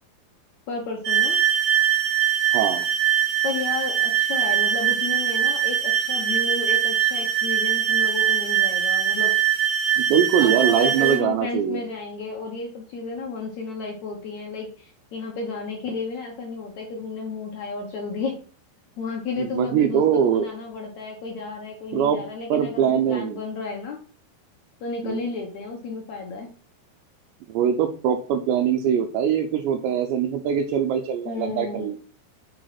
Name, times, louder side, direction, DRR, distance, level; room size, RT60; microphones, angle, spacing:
voice 1, 0.7-1.4 3.4-9.3 10.4-18.4 19.0-24.0 24.8-26.5 31.2-31.9, left 4 dB, 75° left, 1 dB, 1.6 m, -32 dB
sound 1, 1.0-11.2, right 10 dB, 60° right, 2.4 m, -22 dB
voice 2, 2.5-2.8 10.0-11.8 19.4-20.5 21.9-22.2 22.5-23.4 25.0-25.2 27.5-32.1, right 8 dB, 80° right, 4 dB, 2.9 m, -22 dB
6.7 x 5.1 x 5.7 m, 0.39 s
omnidirectional pair, 5.2 m